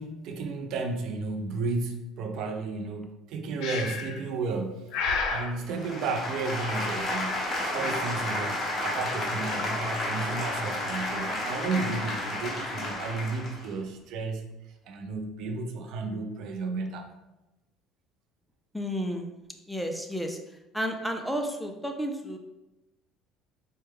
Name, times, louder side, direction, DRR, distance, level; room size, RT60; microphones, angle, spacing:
voice 1, 0.0-4.9 5.3-14.5 14.8-17.1, right 3 dB, 65° right, 5 dB, 0.5 m, -33 dB
Breathing, 3.6-4.2 4.9-5.5, left 4 dB, 70° left, 0.5 m, -30 dB
sound 1, 5.6-13.7, left 1 dB, 30° left, 1.0 m, -31 dB
voice 2, 18.7-19.3 19.7-20.4 20.7-22.4, equal, ahead, 3 dB, 0.4 m, -31 dB
4.5 x 2.2 x 3.4 m, 0.97 s
cardioid pair, 125°, 0 cm